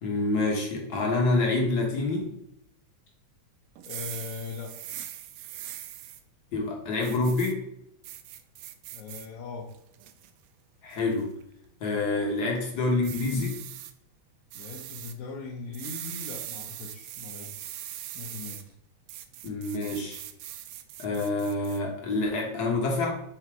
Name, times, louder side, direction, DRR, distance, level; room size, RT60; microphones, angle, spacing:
voice 1, 0.0-2.4 6.5-7.6 10.8-11.3 11.8-13.6 19.4-20.2 21.0-23.1, left 2 dB, 55° left, 0 dB, 1.1 m, -27 dB
sound 1, 3.8-6.2 7.0-7.5 8.0-9.3 9.7-10.3 10.9-11.2 13.0-13.9 14.5-15.1 15.7-18.6 19.1-21.8, right 12 dB, 85° right, 1.4 m, -41 dB
voice 2, 3.9-4.8 8.9-9.7 14.5-17.7 18.1-18.6, left 5 dB, 75° left, -4 dB, 2.3 m, -40 dB
5.6 x 4.0 x 4.6 m, 0.77 s
omnidirectional pair, 3.4 m